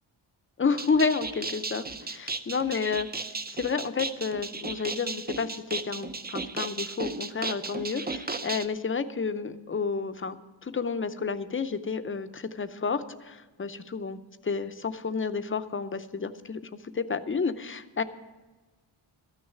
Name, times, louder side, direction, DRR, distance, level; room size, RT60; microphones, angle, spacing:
voice 1, 0.6-3.1 3.5-14.2 14.4-16.6 16.9-18.0, left 5 dB, 25° left, 11 dB, 0.6 m, -30 dB
sound 1, 0.7-8.7, right 3 dB, 20° right, 0.4 m, -35 dB
13.0 x 6.4 x 9.0 m, 1.2 s
wide cardioid pair, 105°, 49 cm